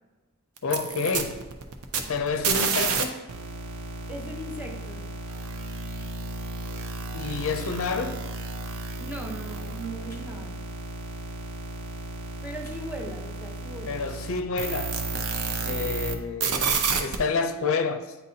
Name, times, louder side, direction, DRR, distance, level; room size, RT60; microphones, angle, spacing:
voice 1, 0.6-1.4 2.0-3.2 7.1-8.2 13.9-14.9 15.6-18.2, left 4 dB, 65° left, 7 dB, 0.5 m, -29 dB
sound 1, 0.6-3.0 3.3-16.1 16.4-17.2, right 4 dB, 80° right, 0.6 m, -31 dB
voice 2, 4.1-5.1 9.0-10.6 12.4-14.0, right 1 dB, 5° right, 1 dB, 0.7 m, -38 dB
sound 2, 6.0-6.1 7.6-7.7 8.7-8.8 10.0-10.2 11.3-11.4 12.6-12.8 13.3-13.5 14.6-14.7, left 2 dB, 15° left, 1.2 m, -52 dB
9.0 x 4.0 x 2.7 m, 1.2 s
head